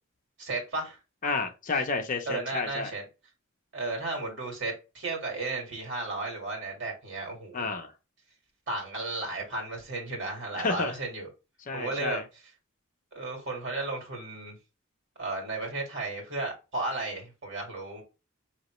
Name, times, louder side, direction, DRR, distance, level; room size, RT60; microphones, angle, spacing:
voice 1, 0.4-1.0 2.3-3.0 3.7-7.7 8.7-11.3 11.7-12.4 13.1-14.6 15.2-18.0, right 2 dB, 60° right, 1.8 m, -34 dB
voice 2, 1.2-2.9 7.5-7.9 10.6-10.9 11.7-12.2, left 4 dB, 40° left, 0.6 m, -30 dB
5.3 x 2.9 x 3.0 m
head